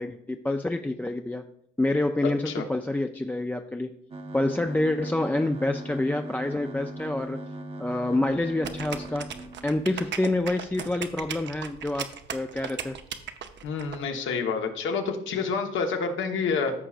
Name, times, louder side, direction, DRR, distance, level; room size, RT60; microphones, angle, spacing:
voice 1, 0.0-1.4 1.8-3.9 4.3-7.4 7.8-9.3 9.6-13.0, left 2 dB, 10° left, 5 dB, 0.4 m, -27 dB
sound 1, 4.1-10.0, right 1 dB, 30° right, 0.9 m, -39 dB
sound 2, 8.6-14.0, right 8 dB, 65° right, 0.8 m, -36 dB
voice 2, 13.6-16.7, left 5 dB, 80° left, 4 dB, 1.2 m, -28 dB
14.0 x 5.7 x 2.5 m, 0.74 s
cardioid pair, 90°, 20 cm